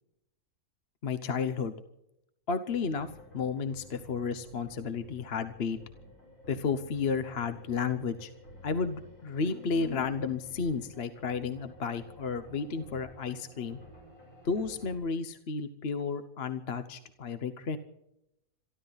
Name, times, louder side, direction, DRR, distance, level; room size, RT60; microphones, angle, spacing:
voice 1, 1.0-1.7 2.5-3.1 3.3-5.8 6.5-8.3 8.6-13.8 14.4-17.8, left 5 dB, 45° left, 11 dB, 1.1 m, -32 dB
sound 1, 2.7-15.0, left 1 dB, 80° left, 7.8 m, -52 dB
27.5 x 12.5 x 4.0 m, 0.84 s
omnidirectional pair, 1.6 m